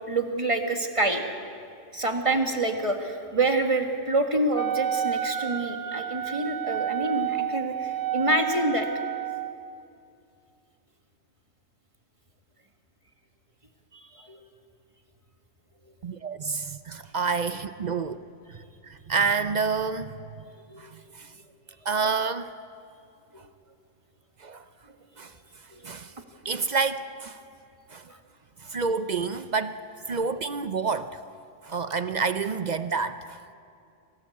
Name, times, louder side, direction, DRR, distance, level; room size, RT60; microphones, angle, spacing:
voice 1, 0.1-1.2 1.9-8.9 13.9-14.4 18.6-18.7 20.7-20.8 25.7-25.9 28.1-28.2, right 2 dB, 25° right, 4 dB, 1.7 m, -27 dB
Wind instrument woodwind instrument, 4.5-9.6, right 10 dB, 70° right, 1.2 m, -30 dB
voice 2, 16.0-18.2 18.5-21.3 21.8-22.5 23.4-23.5 24.4-24.7 25.2-26.1 26.4-27.4 27.9-28.1 28.6-31.2 31.6-33.4, right 5 dB, 50° right, 11 dB, 0.5 m, -29 dB
24.5 x 17.5 x 8.5 m, 2.5 s
omnidirectional pair, 1.4 m